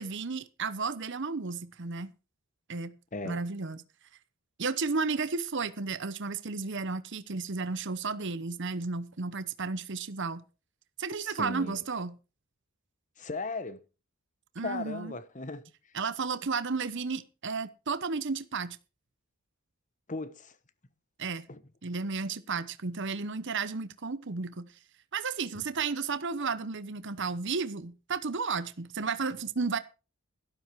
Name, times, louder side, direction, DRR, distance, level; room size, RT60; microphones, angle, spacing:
voice 1, 0.0-2.1 2.7-3.0 3.2-3.8 4.6-10.4 11.0-12.2 14.5-15.1 15.9-18.8 21.2-21.5 21.8-24.7 25.1-29.8, right 4 dB, 55° right, 0.9 m, -33 dB
voice 2, 11.2-11.8 13.2-13.8 14.6-15.6 20.1-20.5 21.5-21.6, left 3 dB, 35° left, 1.1 m, -36 dB
12.5 x 12.5 x 4.6 m
head